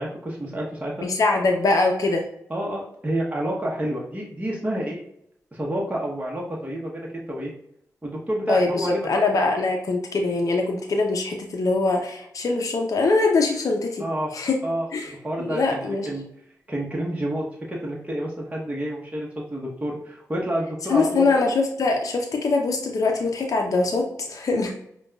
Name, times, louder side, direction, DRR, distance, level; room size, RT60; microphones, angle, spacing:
voice 1, 0.0-1.1 2.5-5.0 5.5-7.5 8.0-9.1 14.0-14.3 14.6-16.3 16.7-21.3, right 1 dB, 20° right, -3 dB, 0.9 m, -29 dB
voice 2, 1.0-2.3 8.5-14.0 14.3-14.6 14.9-15.1 15.4-16.1 20.9-24.7, left 3 dB, 60° left, 2 dB, 0.5 m, -23 dB
5.1 x 2.2 x 2.3 m, 0.73 s
cardioid pair, 45°, 7 cm